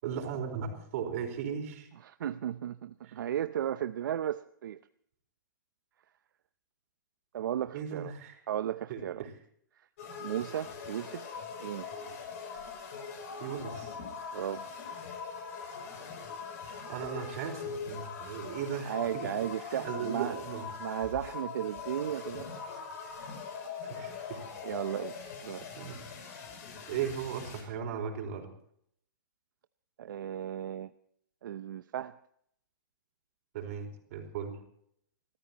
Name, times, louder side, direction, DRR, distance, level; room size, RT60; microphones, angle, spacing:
voice 1, 0.0-1.9 3.1-3.2 7.7-8.4 8.9-9.3 13.4-14.0 16.6-19.3 19.7-20.7 23.8-24.4 25.7-26.0 26.9-28.5 33.5-34.6, right 7 dB, 45° right, 3 dB, 4.5 m, -37 dB
voice 2, 2.0-4.8 7.3-8.1 8.5-9.3 10.2-12.1 14.3-14.7 18.9-20.4 20.8-22.8 24.6-25.7 30.0-30.9 31.4-32.2, right 10 dB, 70° right, 11 dB, 0.7 m, -35 dB
sound 1, 10.0-27.6, left 5 dB, 45° left, 6.5 m, -42 dB
29.5 x 14.0 x 3.0 m, 0.69 s
hypercardioid pair, 165°, 11 cm